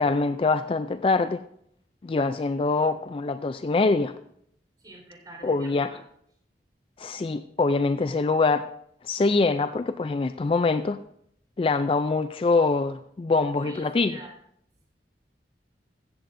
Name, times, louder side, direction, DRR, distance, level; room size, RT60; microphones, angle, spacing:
voice 1, 0.0-1.4 2.0-4.1 5.4-5.9 7.0-8.7 9.0-11.0 11.6-14.2, left 3 dB, 30° left, 0.3 m, -24 dB
voice 2, 4.8-6.0 13.5-14.3, right 2 dB, 25° right, 4.3 m, -46 dB
15.5 x 14.0 x 2.6 m
head